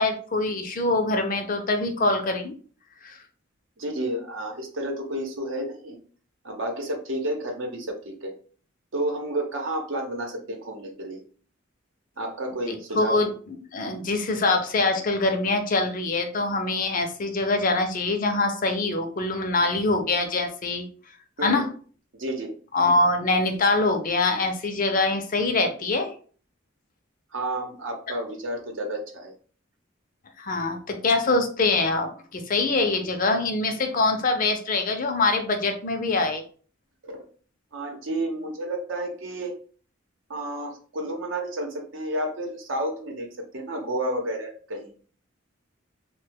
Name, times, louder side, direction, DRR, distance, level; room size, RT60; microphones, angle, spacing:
voice 1, 0.0-2.6 3.0-3.2 12.7-13.3 13.7-20.9 21.4-21.7 22.7-26.1 30.4-36.4, left 2 dB, 40° left, 6 dB, 0.5 m, -24 dB
voice 2, 3.8-6.0 6.4-8.3 8.9-11.2 12.2-13.2 21.4-21.6 22.2-22.5 27.3-29.3 37.0-37.3 37.7-39.5 40.3-44.9, right 1 dB, 70° right, 2 dB, 0.8 m, -31 dB
3.0 x 2.2 x 3.4 m, 0.42 s
head